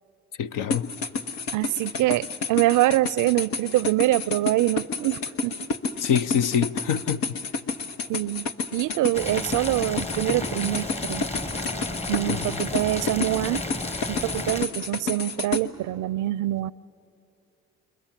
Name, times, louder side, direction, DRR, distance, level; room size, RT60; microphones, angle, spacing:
voice 1, 0.4-0.9 6.0-7.2 12.3-12.5, left 8 dB, 65° left, 0.8 m, -25 dB
sound 1, 0.7-15.6, left 4 dB, 80° left, 1.2 m, -30 dB
voice 2, 1.5-5.7 6.1-6.2 8.1-11.2 12.1-13.6 14.1-16.7, right 16 dB, 60° right, 0.5 m, -25 dB
Boiling, 9.1-14.6, left 2 dB, 20° left, 1.2 m, -32 dB
29.5 x 23.0 x 7.5 m
hypercardioid pair, 55°, 35 cm